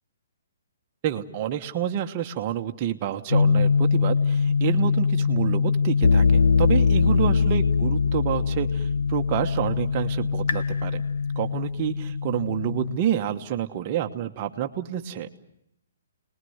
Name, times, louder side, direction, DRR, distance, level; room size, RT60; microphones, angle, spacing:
voice 1, 1.0-11.0 11.4-15.3, right 10 dB, 25° right, 5 dB, 1.2 m, -28 dB
sound 1, 3.3-13.0, left 5 dB, 75° left, 1.2 m, -22 dB
30.0 x 20.5 x 8.0 m, 0.79 s
hypercardioid pair, 175°, 0 cm